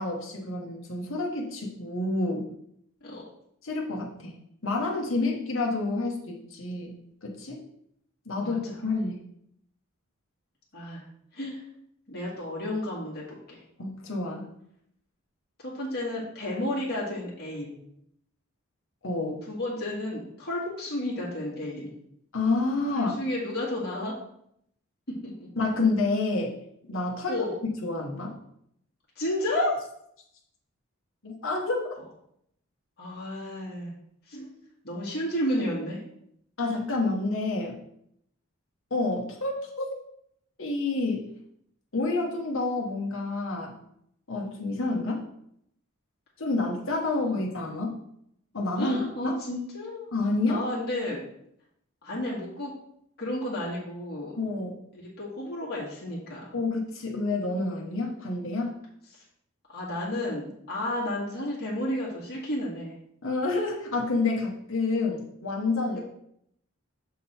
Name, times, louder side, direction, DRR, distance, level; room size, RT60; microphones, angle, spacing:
voice 1, 0.0-2.5 3.6-4.4 4.6-6.9 7.2-7.6 8.3-9.2 13.8-14.5 19.0-19.4 22.3-23.2 25.6-26.6 26.9-27.5 27.8-28.4 29.5-29.7 31.2-31.9 36.6-37.8 38.9-39.8 40.6-41.3 41.9-43.7 44.3-45.2 46.4-48.0 48.5-49.0 49.2-49.3 50.1-50.6 54.4-54.7 56.5-58.8 63.2-66.0, left 3 dB, 65° left, -2 dB, 1.1 m, -28 dB
voice 2, 10.7-11.0 11.3-11.6 12.1-13.6 15.6-17.8 19.5-21.9 23.0-24.1 25.2-25.5 27.3-27.6 29.2-29.7 33.0-33.9 34.3-34.5 34.8-36.0 48.8-50.1 50.5-51.2 52.0-52.7 53.2-54.3 54.9-56.6 59.7-62.9 65.9-66.0, left 1 dB, 45° left, -6 dB, 1.9 m, -32 dB
6.5 x 3.8 x 4.3 m, 0.73 s
head